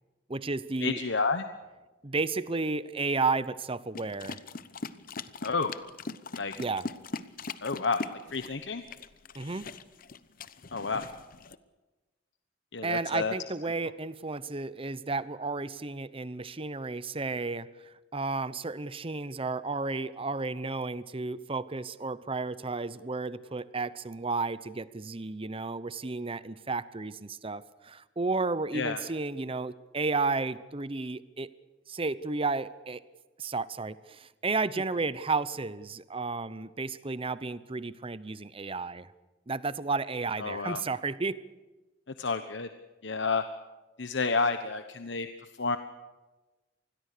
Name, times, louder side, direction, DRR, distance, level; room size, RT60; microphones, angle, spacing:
voice 1, 0.3-1.0 2.0-4.4 6.6-6.9 9.3-9.7 12.8-31.5 31.9-33.0 33.4-39.1 39.5-41.4, right 3 dB, 30° right, 16 dB, 0.9 m, -32 dB
voice 2, 0.8-1.5 5.4-5.7 6.4-6.5 7.6-8.0 8.3-8.8 10.7-11.0 12.7-13.3 28.7-29.0 40.4-40.8 42.2-42.7 43.0-43.4 44.0-45.3 45.6-45.8, left 4 dB, 70° left, 9 dB, 1.1 m, -30 dB
sound 1, 3.9-11.6, left 3 dB, 50° left, 0.9 m, -41 dB
27.0 x 21.0 x 6.8 m, 1.2 s
head